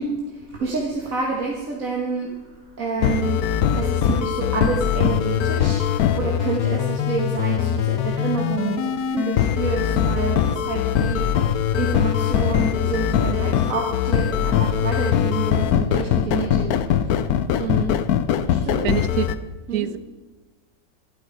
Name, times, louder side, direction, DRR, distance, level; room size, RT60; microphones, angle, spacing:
voice 1, 0.0-2.4 2.8-3.5 3.7-17.1 17.6-17.9 18.5-19.0 19.7-19.9, right 4 dB, 65° right, -1 dB, 1.9 m, -28 dB
sound 1, 3.0-19.4, left 9 dB, 80° left, 1.2 m, -21 dB
voice 2, 18.8-19.3 19.7-20.0, right 11 dB, 85° right, 16 dB, 1.1 m, -24 dB
12.5 x 12.0 x 4.8 m, 1.3 s
omnidirectional pair, 1.6 m